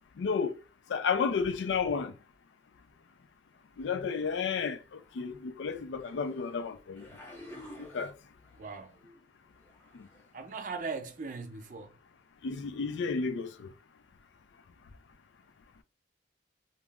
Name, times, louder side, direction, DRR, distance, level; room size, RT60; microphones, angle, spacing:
voice 1, 0.2-0.6 0.9-2.1 3.8-7.0 7.8-8.1 12.4-13.7, left 5 dB, 85° left, 0.4 m, -32 dB
sound 1, 5.1-5.2 6.0-6.6 7.0-8.6 8.9-9.2 9.6-10.3 11.0-11.1, left 1 dB, 15° left, 0.8 m, -50 dB
voice 2, 8.5-9.1 10.3-12.0, right 4 dB, 45° right, 0.4 m, -39 dB
2.3 x 2.0 x 3.4 m
head